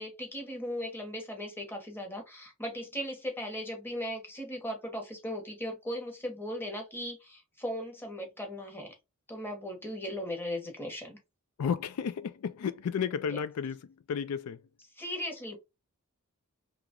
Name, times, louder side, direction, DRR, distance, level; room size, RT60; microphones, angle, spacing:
voice 1, 0.0-8.9 9.3-11.2 13.3-13.4 15.0-15.6, equal, 10° left, 1.0 m, -37 dB
voice 2, 11.6-14.6, left 7 dB, 80° left, 0.4 m, -33 dB
3.0 x 2.4 x 3.6 m
head